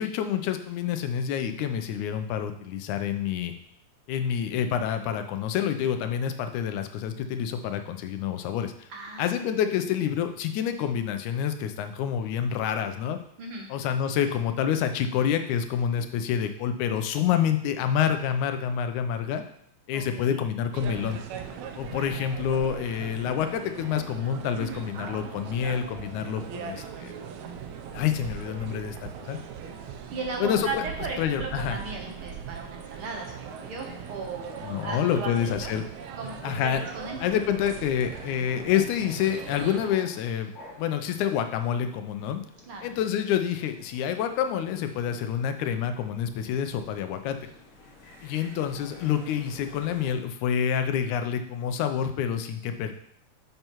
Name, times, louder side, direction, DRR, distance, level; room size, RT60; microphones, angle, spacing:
voice 1, 0.0-3.5 4.1-8.9 9.2-13.2 13.7-19.4 19.9-21.2 21.8-27.1 27.9-29.0 29.3-29.4 30.4-30.8 31.2-31.8 34.6-35.8 36.4-36.8 37.2-40.5 40.8-42.4 42.8-47.4 48.2-52.9, left 8 dB, 85° left, 8 dB, 2.1 m, -27 dB
voice 2, 8.9-9.6 13.4-13.7 19.9-20.4 24.6-24.9 30.1-34.6 34.8-35.3 35.6-35.7 36.2-37.2 42.6-42.9, right 3 dB, 60° right, 1 dB, 1.6 m, -36 dB
sound 1, 20.7-39.9, right 7 dB, 80° right, 2.0 m, -40 dB
sound 2, 33.0-50.1, left 2 dB, 65° left, 4.0 m, -52 dB
9.0 x 6.8 x 3.0 m, 0.68 s
omnidirectional pair, 3.4 m